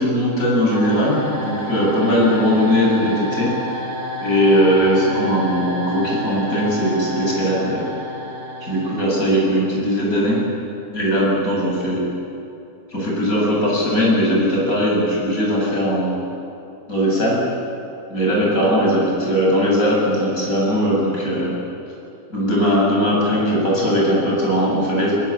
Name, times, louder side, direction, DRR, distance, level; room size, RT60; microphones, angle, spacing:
voice 1, 0.0-3.5 4.2-7.8 8.6-10.4 10.9-12.1 12.9-16.2 16.9-17.4 18.1-21.6 22.3-25.1, equal, 70° left, -4 dB, 8.5 m, -19 dB
sound 1, 0.7-9.6, right 1 dB, 85° right, 7.9 m, -30 dB
27.0 x 21.0 x 8.8 m, 2.7 s
omnidirectional pair, 1.6 m